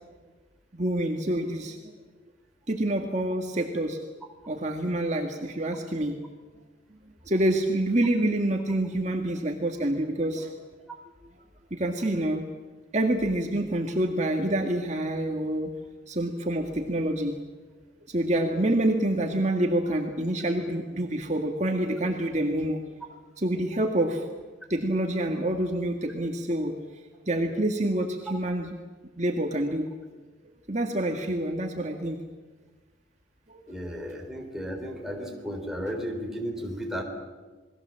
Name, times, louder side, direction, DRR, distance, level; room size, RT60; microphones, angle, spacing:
voice 1, 0.7-1.9 2.7-4.0 4.5-6.2 6.9-7.0 7.3-10.5 11.7-12.4 12.9-15.7 16.1-17.3 18.1-22.8 23.4-24.2 24.7-26.8 27.3-28.8 29.2-29.9 30.7-32.2 33.5-33.6, right 1 dB, 40° right, 2 dB, 1.9 m, -27 dB
voice 2, 33.7-37.0, equal, ahead, 1 dB, 3.9 m, -34 dB
28.5 x 21.0 x 7.6 m, 1.3 s
head